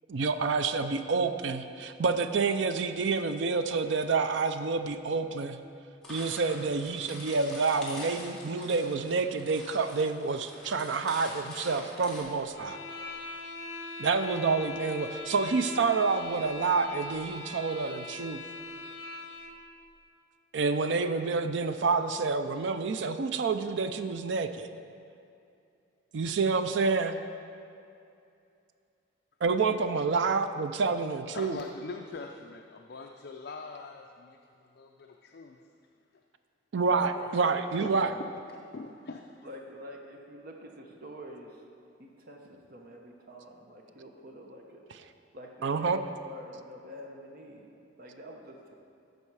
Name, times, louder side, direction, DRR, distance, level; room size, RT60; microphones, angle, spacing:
voice 1, 0.1-5.6 6.1-12.8 14.0-18.4 20.5-24.7 26.1-27.1 29.4-31.6 36.7-38.1 45.6-46.0, right 4 dB, 65° right, 9 dB, 0.4 m, -28 dB
sound 1, 6.0-12.2, left 1 dB, 5° left, 1.9 m, -45 dB
sound 2, 12.5-19.6, left 2 dB, 70° left, 0.9 m, -41 dB
voice 2, 31.3-35.6 36.8-37.5 37.8-39.5, left 4 dB, 55° left, 2 dB, 0.4 m, -43 dB
voice 3, 39.4-41.6 42.0-44.8 45.3-47.7 48.0-48.7, equal, 45° right, 1 dB, 0.8 m, -47 dB
14.5 x 5.4 x 4.7 m, 2.6 s
head